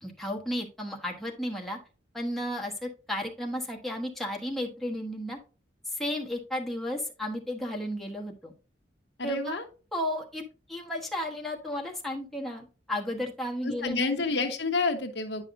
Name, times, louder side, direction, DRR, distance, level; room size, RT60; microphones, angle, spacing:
voice 1, 0.0-1.8 2.1-5.4 5.9-8.5 9.2-9.6 9.9-10.4 10.7-14.1, left 1 dB, ahead, -1 dB, 1.2 m, -33 dB
voice 2, 9.2-9.6 13.6-15.4, left 3 dB, 65° left, 5 dB, 1.0 m, -29 dB
9.8 x 5.7 x 2.6 m, 0.35 s
head